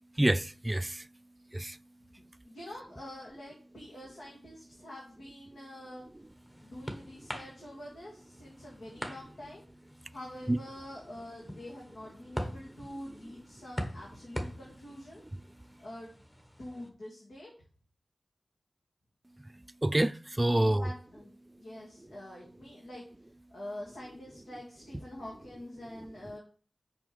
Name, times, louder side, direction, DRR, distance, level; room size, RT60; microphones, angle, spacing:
voice 1, 0.2-0.9 1.5-1.7 10.5-10.6 19.8-20.8, right 1 dB, 20° right, 0.3 m, -26 dB
voice 2, 2.2-6.0 6.6-9.6 10.1-15.2 15.8-16.1 16.6-17.5 20.4-21.3 21.6-23.0 23.5-26.4, left 1 dB, 90° left, 2.2 m, -46 dB
sound 1, 5.8-16.9, equal, 15° left, 1.5 m, -44 dB
6.4 x 5.2 x 5.3 m
wide cardioid pair, 55°, 0 cm